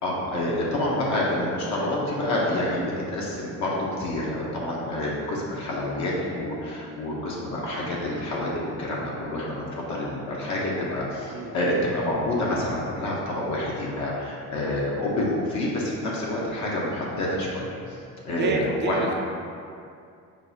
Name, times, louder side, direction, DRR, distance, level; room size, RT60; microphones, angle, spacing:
voice 1, 0.0-18.0 18.2-19.1, left 1 dB, 60° left, -5 dB, 0.8 m, -28 dB
voice 2, 18.3-19.1, right 4 dB, 35° right, 2 dB, 0.4 m, -29 dB
5.9 x 2.3 x 2.7 m, 2.4 s
cardioid pair, 125°, 33 cm